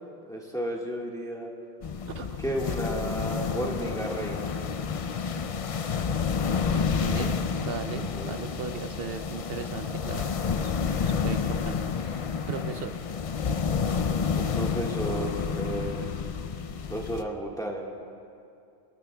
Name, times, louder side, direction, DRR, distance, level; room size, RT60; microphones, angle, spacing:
voice 1, 0.2-1.5 2.4-4.5 8.1-8.4 14.4-16.1 16.9-17.8, right 1 dB, 5° left, -2 dB, 1.4 m, -33 dB
sound 1, 1.8-17.2, left 6 dB, 50° left, 0.4 m, -30 dB
voice 2, 2.1-2.4 6.7-7.4 7.6-10.8 11.1-12.9, right 6 dB, 70° right, 8 dB, 0.8 m, -37 dB
26.5 x 14.5 x 2.2 m, 2.5 s
omnidirectional pair, 1.0 m